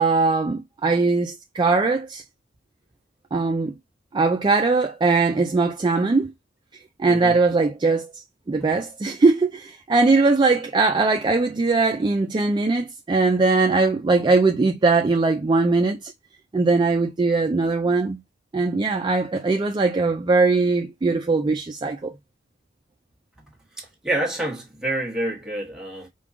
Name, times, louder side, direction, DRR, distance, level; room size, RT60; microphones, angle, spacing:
voice 1, 0.0-2.2 3.3-3.7 4.1-6.3 7.0-8.1 8.5-16.1 16.5-18.2 18.5-22.1, right 3 dB, 25° right, 0.3 m, -20 dB
voice 2, 7.0-7.4 23.8-26.1, right 1 dB, 5° right, 1.2 m, -28 dB
5.1 x 2.3 x 3.5 m
head